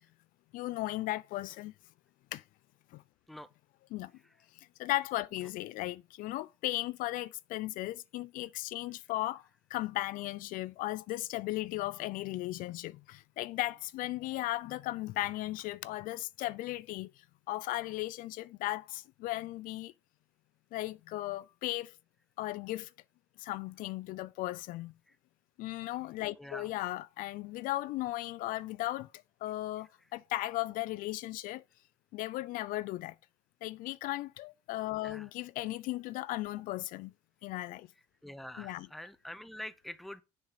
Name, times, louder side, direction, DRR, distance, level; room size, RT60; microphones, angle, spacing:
voice 1, 0.5-1.7 2.3-2.4 2.9-3.0 3.9-4.1 4.8-9.4 9.7-19.9 20.7-21.9 22.4-22.9 23.4-24.9 25.6-29.1 29.4-31.6 32.1-33.1 33.6-37.1 37.4-37.9 38.6-38.9, left 17 dB, 60° left, 0.4 m, -36 dB
voice 2, 26.4-26.7 35.0-35.3 38.2-40.2, left 1 dB, ahead, 0.6 m, -45 dB
6.8 x 5.5 x 3.9 m
supercardioid pair, 85°, 16 cm